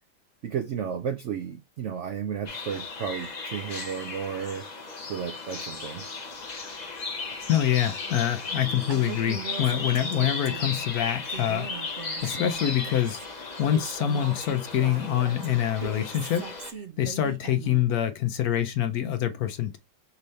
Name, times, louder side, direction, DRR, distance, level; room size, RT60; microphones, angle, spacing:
voice 1, 0.4-4.7 5.1-6.1, right 8 dB, 90° right, 0.6 m, -33 dB
sound 1, 2.5-16.7, left 4 dB, 40° left, 0.6 m, -36 dB
voice 2, 7.5-11.7 12.2-13.2 13.6-16.5 17.0-19.8, left 11 dB, 70° left, 1.0 m, -25 dB
Female speech woman speaking, 8.9-10.8 11.2-13.2 13.7-17.8, right 7 dB, 55° right, 0.9 m, -39 dB
5.4 x 2.7 x 3.2 m
omnidirectional pair, 1.9 m